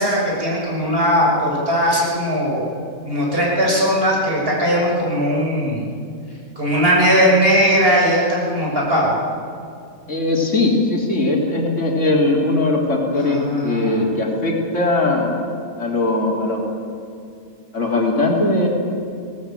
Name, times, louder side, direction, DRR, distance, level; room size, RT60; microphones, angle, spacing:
voice 1, 0.0-2.6 3.0-5.8 6.6-9.2 13.1-14.0, equal, 40° right, -3 dB, 6.4 m, -18 dB
voice 2, 10.1-15.3 15.8-16.7 17.7-18.7, left 2 dB, 60° left, -1 dB, 3.6 m, -19 dB
21.0 x 18.0 x 9.0 m, 2.4 s
omnidirectional pair, 1.5 m